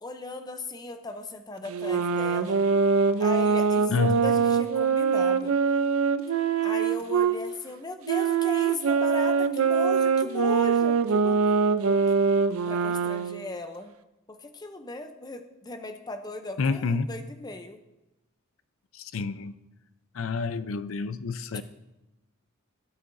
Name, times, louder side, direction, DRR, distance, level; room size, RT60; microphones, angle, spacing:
voice 1, 0.0-2.6 3.2-5.6 6.6-11.4 12.7-13.9 14.3-17.8 21.5-21.6, left 2 dB, 20° left, 0.6 m, -37 dB
sound 1, 1.7-7.4 8.1-13.4, right 5 dB, 75° right, 0.5 m, -23 dB
voice 2, 3.9-4.2 16.6-17.1 18.9-19.6 20.1-21.6, left 4 dB, 65° left, 0.5 m, -28 dB
16.5 x 8.3 x 2.6 m
head